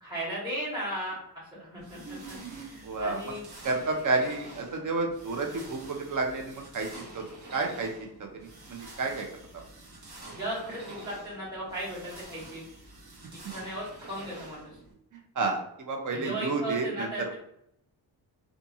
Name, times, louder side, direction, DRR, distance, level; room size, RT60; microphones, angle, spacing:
voice 1, 0.0-3.4 10.3-12.6 13.5-14.8 16.1-17.3, right 1 dB, 10° right, -8 dB, 1.1 m, -36 dB
sound 1, 1.8-14.9, right 2 dB, 65° right, 1.0 m, -48 dB
voice 2, 2.0-3.3 3.6-7.2 7.5-7.9 8.2-9.3 15.1-17.3, right 3 dB, 50° right, 2 dB, 0.7 m, -31 dB
2.5 x 2.5 x 2.6 m, 0.74 s
cardioid pair, 90°, 41 cm